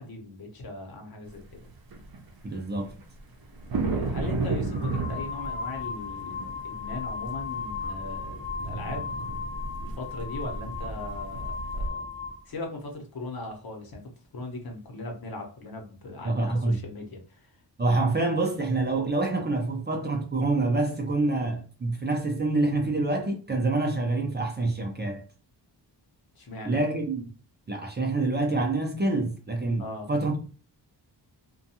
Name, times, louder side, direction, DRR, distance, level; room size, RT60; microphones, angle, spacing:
voice 1, 0.0-1.4 3.8-9.1 9.8-12.1 12.5-17.6 26.3-26.8 29.8-30.1, left 2 dB, 55° left, 0.9 m, -39 dB
sound 1, 1.3-1.4 1.6-11.9, right 3 dB, 55° right, 0.7 m, -34 dB
voice 2, 2.4-2.9 16.2-16.8 17.8-25.2 26.7-27.3 27.7-30.5, right 2 dB, 25° right, 0.5 m, -26 dB
sound 2, 3.7-3.9 4.7-12.4, left 5 dB, 15° left, 0.6 m, -36 dB
2.5 x 2.3 x 2.7 m
wide cardioid pair, 110°, 44 cm